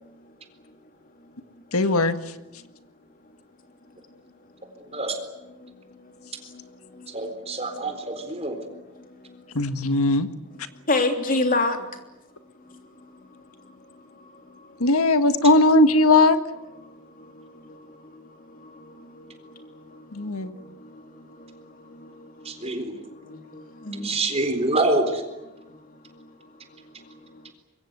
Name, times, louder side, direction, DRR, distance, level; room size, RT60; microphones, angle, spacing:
voice 1, 0.0-0.3 0.6-0.8 1.2-1.6 2.6-2.9 3.2-3.4 3.9-4.0 4.6-5.0 5.6-7.9 8.7-9.7 10.7-12.0 12.5-14.8 16.8-24.2 25.5-27.5, left 2 dB, 40° left, 3.3 m, -34 dB
voice 2, 1.7-2.2 9.6-10.3 14.8-16.4 20.1-20.5, left 2 dB, 70° left, 1.8 m, -18 dB
voice 3, 4.8-5.2 7.1-8.6 22.4-23.0 24.0-25.2, right 2 dB, 30° right, 4.1 m, -26 dB
25.0 x 23.0 x 8.2 m
head